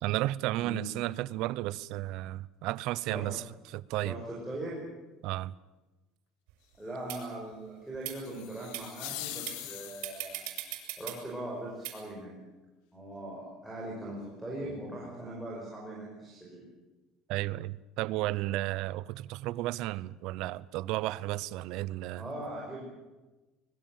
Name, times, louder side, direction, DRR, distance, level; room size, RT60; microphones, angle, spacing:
voice 1, 0.0-4.2 5.2-5.5 17.3-22.2, right 16 dB, 55° right, 0.7 m, -33 dB
voice 2, 4.0-4.8 6.8-10.4 11.0-12.4 12.9-16.6 22.2-22.8, right 1 dB, 5° right, 5.7 m, -40 dB
sound 1, 6.5-6.6 7.1-7.2 7.9-8.2 8.7-8.8 9.5-9.6 10.0-11.2 11.8-11.9, right 15 dB, 75° right, 6.6 m, -38 dB
sound 2, 8.2-10.4, left 13 dB, 75° left, 2.4 m, -42 dB
25.0 x 22.0 x 7.6 m
cardioid pair, 170°, 0 cm